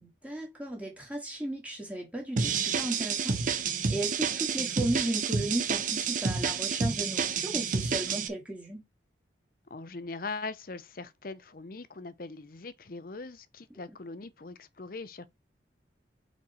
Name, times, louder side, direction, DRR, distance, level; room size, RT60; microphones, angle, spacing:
voice 1, 0.0-3.4 3.9-8.8, right 1 dB, 5° right, 1.8 m, -35 dB
sound 1, 2.4-8.3, right 5 dB, 45° right, 0.8 m, -29 dB
voice 2, 9.7-15.3, left 3 dB, 50° left, 0.7 m, -41 dB
6.1 x 4.5 x 4.3 m
head